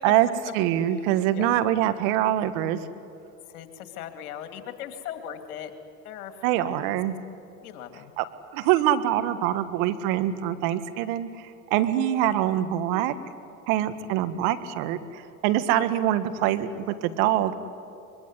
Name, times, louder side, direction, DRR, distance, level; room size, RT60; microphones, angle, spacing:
voice 1, 0.5-2.8 6.4-7.2 8.2-8.3 8.5-11.3 11.7-13.1 13.7-17.5, right 12 dB, 65° right, 11 dB, 1.7 m, -24 dB
voice 2, 3.5-5.7 6.0-6.3 6.6-6.8 7.6-8.1, left 10 dB, 75° left, 7 dB, 2.7 m, -39 dB
23.5 x 22.0 x 9.8 m, 2.6 s
hypercardioid pair, 85°, 44 cm